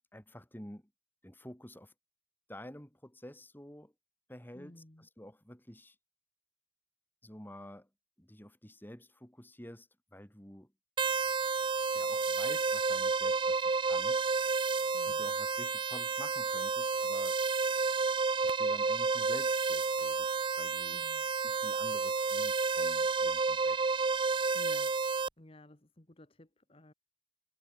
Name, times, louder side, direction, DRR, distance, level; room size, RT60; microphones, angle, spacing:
voice 1, 0.1-0.8 1.2-1.9 2.5-3.9 4.3-5.9 7.2-7.9 8.2-10.7 11.9-14.2 15.1-17.4 18.4-21.0 21.4-23.8, equal, 10° left, 3.2 m, -50 dB
voice 2, 4.5-5.1 14.9-15.3 20.9-21.3 24.5-25.0 25.4-26.9, left 1 dB, 35° left, 1.7 m, -55 dB
sound 1, 11.0-25.3, right 4 dB, 30° right, 0.5 m, -30 dB
head